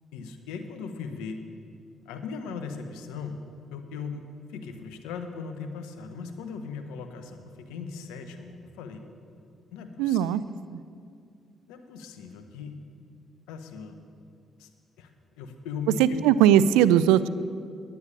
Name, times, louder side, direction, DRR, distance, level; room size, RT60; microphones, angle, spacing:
voice 1, 0.1-1.4 2.0-3.4 3.7-9.0 9.7-10.2 11.7-12.8 13.5-14.0 14.6-14.7 15.0-15.1 15.4-16.2, left 5 dB, 85° left, 6 dB, 0.9 m, -38 dB
voice 2, 10.0-10.4 10.7-10.8 16.0-17.3, right 10 dB, 85° right, 16 dB, 0.3 m, -19 dB
10.0 x 9.5 x 6.7 m, 2.3 s
hypercardioid pair, 50°, 0 cm